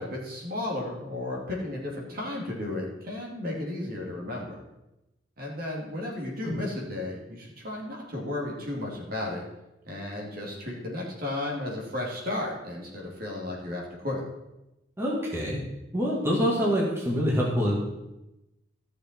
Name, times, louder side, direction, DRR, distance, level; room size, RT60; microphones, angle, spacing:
voice 1, 0.0-4.6 5.4-9.4 9.8-14.2, left 1 dB, 55° right, -2 dB, 2.9 m, -34 dB
voice 2, 15.0-15.6 15.9-17.9, equal, 15° right, -4 dB, 2.2 m, -26 dB
15.0 x 6.6 x 4.6 m, 0.94 s
head